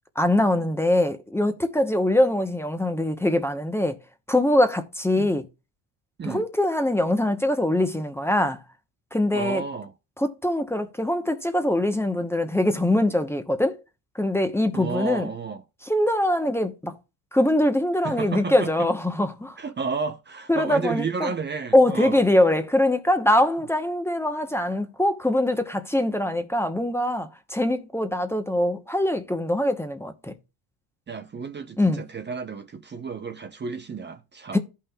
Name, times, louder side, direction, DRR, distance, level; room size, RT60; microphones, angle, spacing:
voice 1, 0.2-3.9 4.3-5.4 6.2-8.6 9.1-9.6 10.2-13.7 14.2-15.3 15.9-16.9 17.3-19.6 20.5-21.3 21.7-30.3 31.8-32.0 34.5-34.6, left 1 dB, 5° left, 0.9 m, -23 dB
voice 2, 9.3-9.9 14.7-15.6 18.0-18.9 19.6-22.2 31.1-34.6, right 5 dB, 25° right, 0.8 m, -32 dB
14.5 x 5.7 x 2.3 m
cardioid pair, 105°, 41 cm